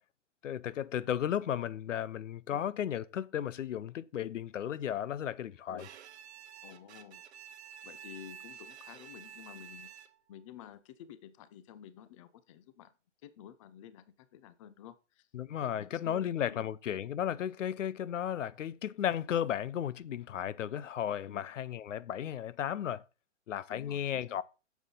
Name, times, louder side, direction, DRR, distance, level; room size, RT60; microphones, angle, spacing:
voice 1, 0.4-5.9 15.3-23.0 23.5-24.4, left 10 dB, 80° left, 0.7 m, -34 dB
Bowed string instrument, 5.8-10.4, right 8 dB, 60° right, 0.8 m, -50 dB
voice 2, 6.6-7.2 7.8-9.9 10.3-12.9 13.2-15.3 15.6-16.7 21.2-21.4 23.7-24.4, left 10 dB, 25° left, 0.5 m, -51 dB
8.0 x 7.1 x 3.8 m
hypercardioid pair, 145°, 37 cm